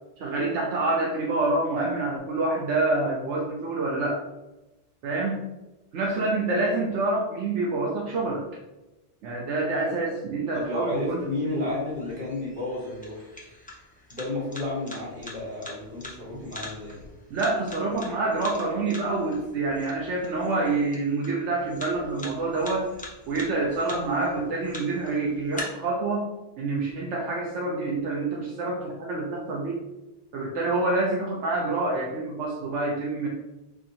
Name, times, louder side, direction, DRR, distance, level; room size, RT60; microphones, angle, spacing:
voice 1, 0.2-4.2 5.0-5.4 5.9-8.4 9.2-11.3 11.5-11.7 16.3-16.4 17.3-22.9 23.3-26.3 26.6-29.8 30.3-33.3, right 2 dB, 80° right, -2 dB, 0.9 m, -27 dB
voice 2, 10.5-13.3 14.1-17.0, left 2 dB, 45° right, -7 dB, 1.6 m, -32 dB
sound 1, 10.6-25.6, left 2 dB, 10° left, 0.6 m, -45 dB
4.7 x 2.5 x 2.8 m, 1.0 s
omnidirectional pair, 1.2 m